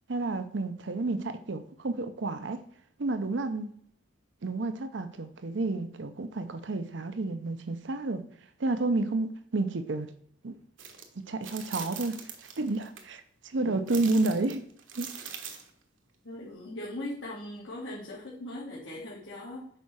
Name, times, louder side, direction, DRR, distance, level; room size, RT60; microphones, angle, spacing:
voice 1, 0.1-2.6 3.0-3.7 4.4-8.3 8.6-10.1 10.4-10.6 11.3-12.2 12.6-14.7 15.0-15.1, right 2 dB, 65° right, 0.6 m, -30 dB
sound 1, 10.8-11.0 11.4-13.0 13.9-15.7, right 7 dB, 85° right, 1.4 m, -42 dB
voice 2, 16.2-19.7, left 1 dB, 75° left, 2.0 m, -39 dB
6.9 x 4.7 x 6.1 m
head